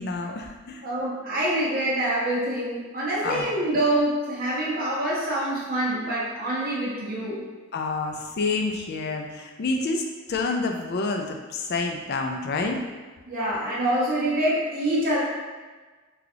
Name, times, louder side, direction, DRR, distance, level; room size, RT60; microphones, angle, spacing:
voice 1, 0.0-0.8 3.2-3.5 7.7-10.0 10.3-12.8, left 3 dB, 50° left, 3 dB, 0.4 m, -28 dB
voice 2, 0.8-7.4 13.3-15.2, right 1 dB, 40° right, -7 dB, 1.0 m, -26 dB
3.3 x 2.3 x 3.7 m, 1.3 s
head